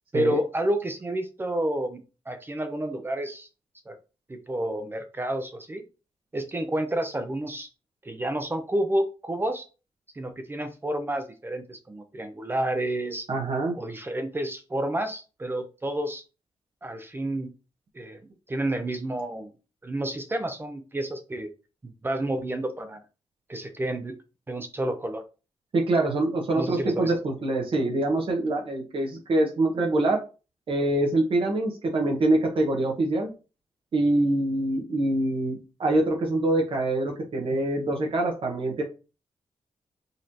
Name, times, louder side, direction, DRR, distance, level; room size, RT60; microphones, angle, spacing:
voice 1, 0.1-3.5 3.9-4.0 4.3-5.8 6.3-7.7 8.0-9.6 10.2-13.3 13.8-16.2 16.8-17.5 17.9-18.2 18.5-19.5 19.8-21.5 21.8-23.0 23.5-24.2 24.5-25.2 26.5-27.1, right 1 dB, 20° right, 8 dB, 0.5 m, -30 dB
voice 2, 13.3-13.8 25.7-30.2 30.7-33.3 33.9-38.8, right 2 dB, 55° right, 0 dB, 1.0 m, -25 dB
3.9 x 3.0 x 2.6 m, 0.32 s
cardioid pair, 110°, 11 cm